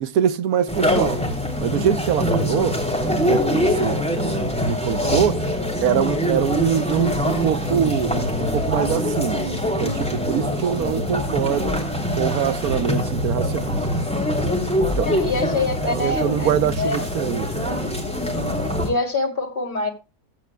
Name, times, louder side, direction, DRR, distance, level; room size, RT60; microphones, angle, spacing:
voice 1, 0.0-1.2 1.6-5.4 5.8-9.5 9.8-11.8 12.1-13.8 14.3-14.6 15.0-15.1 15.8-17.8, right 9 dB, 75° right, 1.1 m, -24 dB
sound 1, 0.7-18.9, equal, 5° left, 2.9 m, -23 dB
voice 2, 15.0-17.1 18.6-19.9, left 3 dB, 35° left, 3.0 m, -26 dB
16.0 x 9.1 x 2.2 m
omnidirectional pair, 1.7 m